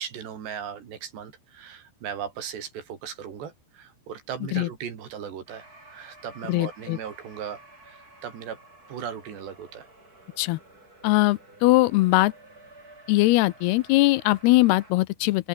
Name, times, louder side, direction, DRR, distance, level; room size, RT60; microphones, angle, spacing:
voice 1, 0.0-8.6 8.9-9.9, right 8 dB, 85° right, 5.6 m, -37 dB
sound 1, 5.5-14.9, right 2 dB, 20° right, 7.2 m, -51 dB
voice 2, 6.5-7.0 10.4-10.6 11.0-12.3 13.1-15.5, left 19 dB, 80° left, 2.5 m, -21 dB
open air
omnidirectional pair, 4.8 m